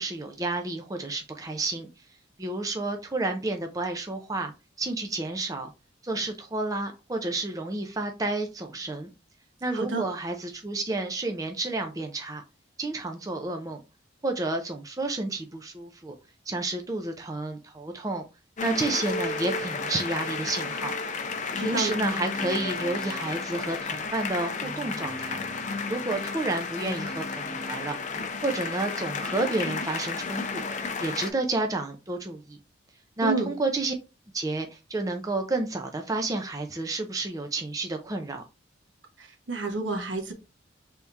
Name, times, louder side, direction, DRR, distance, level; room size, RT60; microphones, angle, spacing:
voice 1, 0.0-1.9 2.4-4.5 4.8-5.7 6.0-9.1 9.6-12.4 12.8-13.8 14.2-16.1 16.5-18.2 18.6-20.9 21.6-25.4 25.9-28.0 28.4-30.6 31.0-32.6 33.2-33.9 34.3-38.4, right 2 dB, 20° right, 0.5 m, -30 dB
voice 2, 9.7-10.1 21.5-22.0 33.2-33.5 39.2-40.3, right 3 dB, 70° right, 1.0 m, -30 dB
sound 1, 18.6-31.3, left 4 dB, 40° left, 0.5 m, -32 dB
3.5 x 2.7 x 4.4 m
head